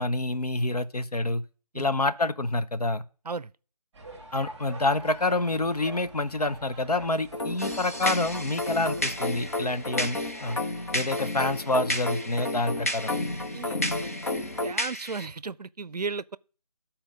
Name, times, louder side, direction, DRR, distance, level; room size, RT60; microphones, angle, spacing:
voice 1, 0.0-1.4 1.7-3.0 4.3-10.6 10.9-13.1, left 2 dB, 70° left, 0.9 m, -27 dB
sound 1, 3.9-10.6, right 2 dB, 5° right, 1.3 m, -46 dB
sound 2, 7.3-14.7, left 2 dB, 45° left, 0.9 m, -32 dB
sound 3, 7.6-15.3, equal, 25° left, 0.4 m, -35 dB
voice 2, 14.4-16.4, right 4 dB, 80° right, 0.5 m, -35 dB
11.5 x 4.4 x 5.1 m
figure-of-eight pair, 160°, 20 cm